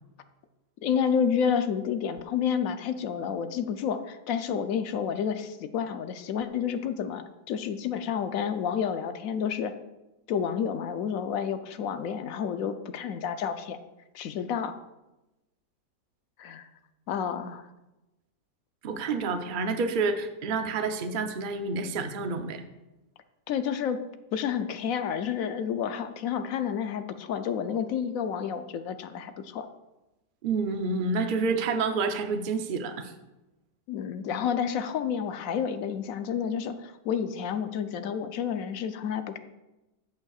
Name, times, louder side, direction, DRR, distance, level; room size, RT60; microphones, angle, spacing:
voice 1, 0.8-9.7 10.3-13.8 14.1-14.8 16.4-16.7 17.1-17.7 23.5-24.0 24.3-29.7 33.9-39.4, left 7 dB, 65° left, 9 dB, 0.9 m, -30 dB
voice 2, 18.8-22.6 30.4-33.1, right 4 dB, 75° right, 6 dB, 0.4 m, -29 dB
15.0 x 8.2 x 2.4 m, 1.0 s
omnidirectional pair, 1.8 m